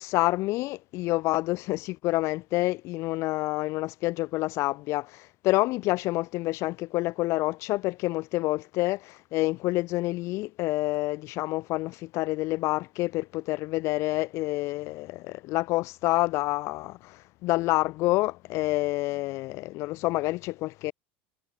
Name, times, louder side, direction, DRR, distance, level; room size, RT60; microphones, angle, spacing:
voice 1, 0.0-20.9, left 20 dB, 55° left, 5.5 m, -28 dB
supercardioid pair, 135°, 6 cm